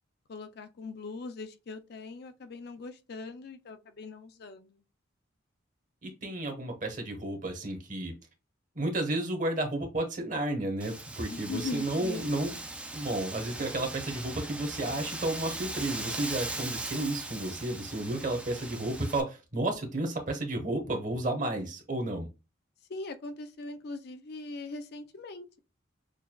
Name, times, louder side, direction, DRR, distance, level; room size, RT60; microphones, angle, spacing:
voice 1, 0.3-4.8 11.3-12.3 22.9-25.6, left 3 dB, 55° left, 0.4 m, -41 dB
voice 2, 6.0-8.1 8.7-12.6 12.9-22.3, right 1 dB, 40° right, 1.0 m, -32 dB
Wind, 10.8-19.2, right 2 dB, 5° right, 0.4 m, -39 dB
6.4 x 2.2 x 2.2 m
head